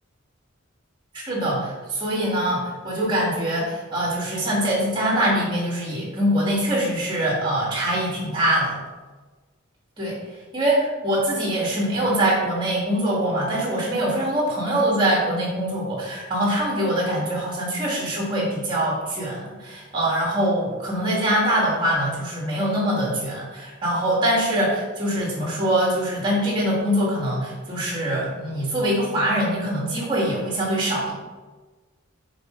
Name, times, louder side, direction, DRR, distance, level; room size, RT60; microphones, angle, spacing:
voice 1, 1.1-8.8 10.0-10.2 10.5-31.1, right 1 dB, 20° right, -4 dB, 2.2 m, -23 dB
6.6 x 5.1 x 4.0 m, 1.3 s
head